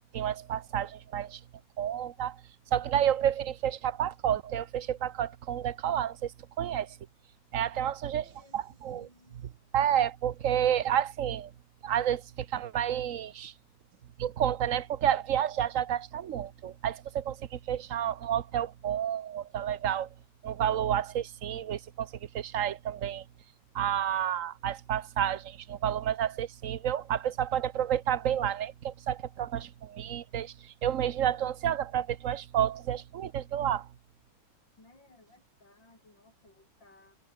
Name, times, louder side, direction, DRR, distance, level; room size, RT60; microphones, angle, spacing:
voice 1, 0.1-1.4 1.8-2.4 2.7-6.3 6.6-7.0 7.5-8.2 8.5-11.5 11.8-13.5 14.2-20.1 20.4-23.2 23.7-33.9, right 10 dB, 55° right, 1.0 m, -30 dB
voice 2, 7.7-8.6 8.9-9.4 34.8-37.2, left 2 dB, 70° left, 8.3 m, -59 dB
omnidirectional pair, 2.1 m